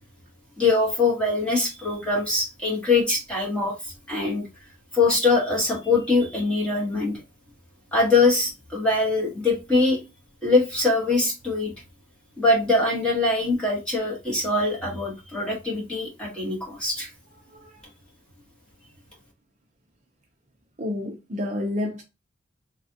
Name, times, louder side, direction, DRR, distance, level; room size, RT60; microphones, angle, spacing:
voice 1, 0.6-3.7 4.1-4.5 4.9-7.2 7.9-10.0 10.4-11.7 12.4-17.1, left 3 dB, 5° left, 1.2 m, -23 dB
voice 2, 20.8-22.0, left 1 dB, 40° right, 0.6 m, -29 dB
3.3 x 2.4 x 2.7 m
head